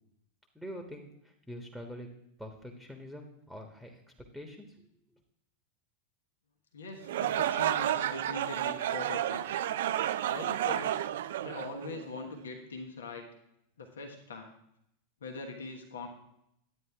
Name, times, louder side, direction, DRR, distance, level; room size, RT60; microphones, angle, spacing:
voice 1, 0.5-2.1 2.4-4.0 4.3-4.9, equal, ahead, 4 dB, 1.3 m, -45 dB
voice 2, 6.7-9.4 10.3-11.0 11.4-13.3 13.8-14.5 15.2-16.1, left 3 dB, 70° left, 3 dB, 1.3 m, -42 dB
sound 1, 7.0-12.2, right 11 dB, 60° right, 0.3 m, -31 dB
10.5 x 9.3 x 3.5 m, 0.76 s
figure-of-eight pair, 90°, 0 cm